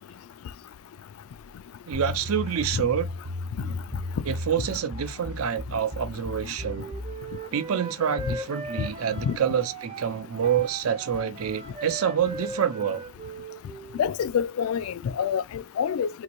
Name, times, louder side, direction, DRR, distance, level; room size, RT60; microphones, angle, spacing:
sound 1, 1.9-7.2, left 2 dB, 60° right, 0.8 m, -35 dB
voice 1, 1.9-3.1 4.3-6.9 7.5-13.0, right 8 dB, 85° right, 0.5 m, -27 dB
Wind instrument woodwind instrument, 6.6-14.0, right 3 dB, 30° right, 0.5 m, -38 dB
voice 2, 14.0-16.1, left 7 dB, 80° left, 0.3 m, -26 dB
3.8 x 2.6 x 3.0 m
head